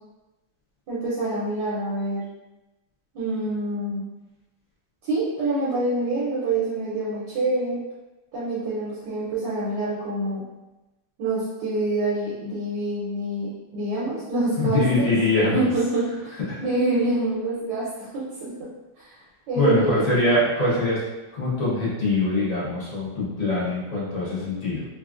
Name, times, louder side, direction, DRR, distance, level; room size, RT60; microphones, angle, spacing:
voice 1, 0.9-2.2 3.1-4.0 5.0-7.8 8.3-10.4 11.2-15.1 15.5-18.5 19.0-19.2 19.5-20.0, right 2 dB, 75° right, -8 dB, 1.3 m, -26 dB
voice 2, 14.6-15.7 16.5-16.7 19.5-21.0 21.3-24.9, left 2 dB, 45° left, -8 dB, 0.5 m, -23 dB
3.2 x 2.4 x 2.4 m, 1.0 s
omnidirectional pair, 1.9 m